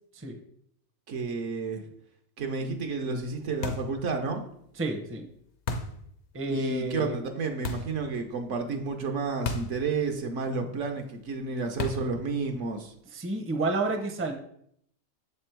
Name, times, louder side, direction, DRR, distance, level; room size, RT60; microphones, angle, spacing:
voice 1, 1.1-1.8 2.4-4.4 6.5-12.9, right 4 dB, 70° right, 5 dB, 1.1 m, -31 dB
sound 1, 3.6-4.0 5.7-6.0 7.6-8.0 9.5-9.8 10.1-10.2 11.8-12.2, left 3 dB, 60° left, 0.9 m, -32 dB
voice 2, 4.8-5.3 6.3-7.1 13.1-14.3, right 2 dB, 15° right, 3 dB, 0.5 m, -30 dB
7.2 x 3.5 x 4.4 m, 0.70 s
omnidirectional pair, 1.4 m